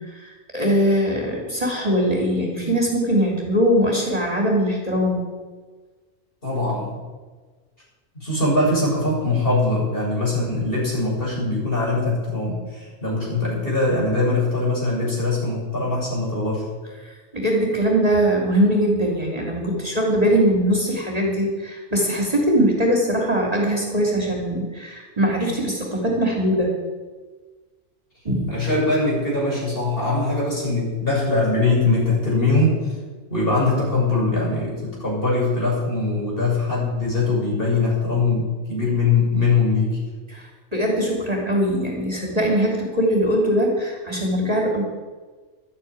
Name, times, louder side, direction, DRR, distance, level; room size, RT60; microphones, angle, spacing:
voice 1, 0.1-5.2 17.0-26.8 28.2-28.5 40.3-44.8, equal, 30° right, -1 dB, 3.0 m, -21 dB
voice 2, 6.4-7.0 8.1-16.6 28.5-32.9 33.3-40.0, left 3 dB, 50° left, -4 dB, 6.8 m, -22 dB
12.5 x 9.2 x 9.6 m, 1.4 s
omnidirectional pair, 1.2 m